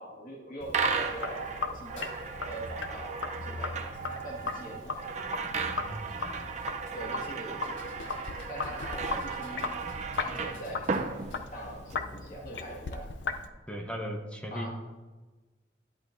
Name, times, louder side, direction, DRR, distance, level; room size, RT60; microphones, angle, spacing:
voice 1, 0.0-2.1 2.5-5.1 6.9-7.6 8.5-9.7 10.2-11.2 11.5-13.0 14.5-14.7, right 1 dB, 50° left, -2 dB, 1.8 m, -42 dB
Sink (filling or washing), 0.6-13.5, left 4 dB, 85° left, 0.6 m, -38 dB
sound 1, 0.7-11.9, right 5 dB, 40° right, 0.6 m, -35 dB
sound 2, 0.8-13.5, right 1 dB, 20° right, 1.4 m, -54 dB
voice 2, 5.8-6.5 13.7-14.7, equal, 5° left, 2 dB, 1.0 m, -38 dB
11.0 x 11.0 x 2.6 m, 1.2 s
head